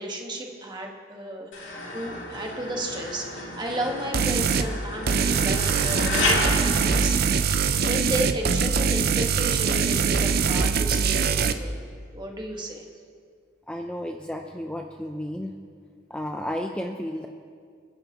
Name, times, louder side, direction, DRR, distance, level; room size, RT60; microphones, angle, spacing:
voice 1, 0.0-7.2 7.6-11.8 12.1-12.8, right 1 dB, 20° right, 0 dB, 1.5 m, -33 dB
sound 1, 1.5-7.8, left 2 dB, 60° left, 2.7 m, -31 dB
sound 2, 4.1-4.7 5.1-11.5, right 5 dB, 50° right, 0.6 m, -23 dB
voice 2, 13.7-15.5 16.1-17.3, left 1 dB, 5° left, 2 dB, 0.5 m, -32 dB
30.0 x 10.5 x 3.0 m, 2.1 s
head